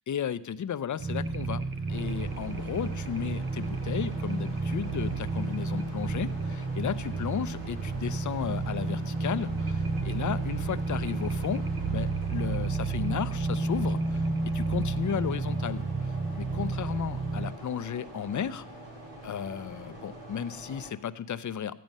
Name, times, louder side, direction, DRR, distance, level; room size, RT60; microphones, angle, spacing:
voice 1, 0.1-1.6 1.9-14.3 14.5-18.7 19.2-21.7, left 8 dB, 40° left, 14 dB, 0.6 m, -34 dB
sound 1, 1.0-17.5, right 3 dB, 30° right, 0.6 m, -31 dB
sound 2, 1.9-20.9, right 1 dB, 70° right, 3.4 m, -45 dB
14.0 x 9.0 x 5.3 m, 0.80 s
cardioid pair, 95°, 46 cm